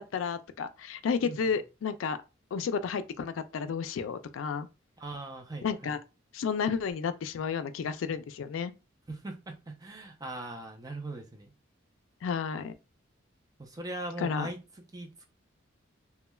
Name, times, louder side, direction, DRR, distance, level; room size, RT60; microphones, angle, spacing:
voice 1, 0.0-2.2 2.5-4.7 5.6-6.0 6.3-8.7 12.2-12.7 14.2-14.5, left 6 dB, 85° left, 0.3 m, -32 dB
voice 2, 1.2-1.6 5.0-6.0 9.1-11.5 13.6-14.6 14.9-15.3, right 2 dB, 20° right, 0.5 m, -40 dB
3.1 x 2.2 x 2.2 m
head